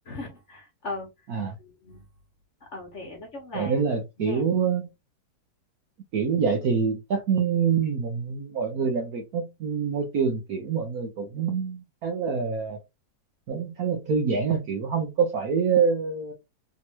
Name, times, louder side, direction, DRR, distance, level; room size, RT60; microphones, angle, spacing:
voice 1, 0.1-1.1 1.6-2.0 2.7-3.8 4.2-4.4, left 2 dB, 45° left, 1.2 m, -38 dB
voice 2, 3.5-4.9 6.1-12.8 13.5-16.3, right 6 dB, 65° right, 1.0 m, -26 dB
3.5 x 3.0 x 2.8 m
omnidirectional pair, 2.1 m